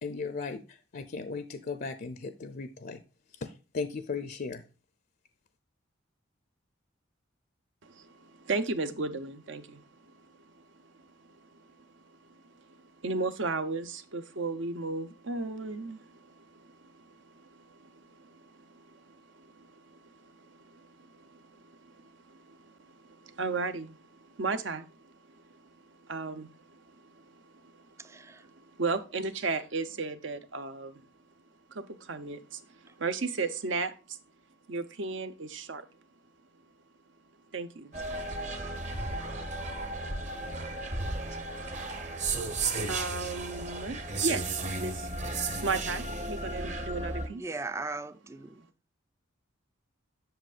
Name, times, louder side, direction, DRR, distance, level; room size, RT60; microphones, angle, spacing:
voice 1, 0.0-3.0 3.4-4.6, left 4 dB, 50° left, 0.5 m, -37 dB
voice 2, 7.8-9.8 10.6-10.7 12.7-12.8 13.0-25.1 26.1-26.6 27.0-27.3 28.1-31.0 31.7-32.6 33.0-34.2 34.7-35.9 37.5-37.9 42.9-47.4, right 3 dB, 70° right, 0.7 m, -36 dB
voice 3, 28.0-28.4 47.3-48.6, right 3 dB, 15° right, 0.3 m, -38 dB
sound 1, 37.9-47.3, right 3 dB, 40° right, 1.0 m, -34 dB
7.9 x 6.3 x 2.4 m
head